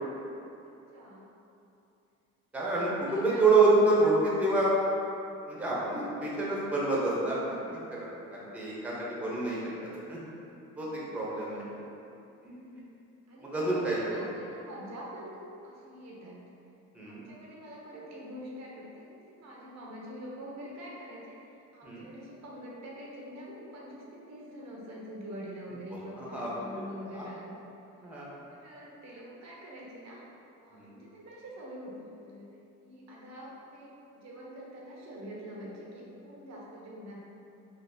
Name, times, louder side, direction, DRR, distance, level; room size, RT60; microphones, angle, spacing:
voice 1, 0.9-1.3 2.9-3.4 5.9-6.2 10.7-11.1 12.5-12.9 13.3-16.4 17.1-21.4 21.7-27.5 28.4-30.2 30.6-32.5 32.8-37.2, equal, 60° right, -4 dB, 0.7 m, -45 dB
voice 2, 2.5-4.7 5.5-10.2 10.8-11.6 12.4-12.8 13.4-14.3 16.9-17.2 21.8-22.1 26.2-26.9 27.1-27.3 28.0-28.4 30.7-30.9, right 2 dB, 5° right, -6 dB, 0.8 m, -28 dB
4.1 x 2.6 x 2.6 m, 2.8 s
cardioid pair, 90°, 30 cm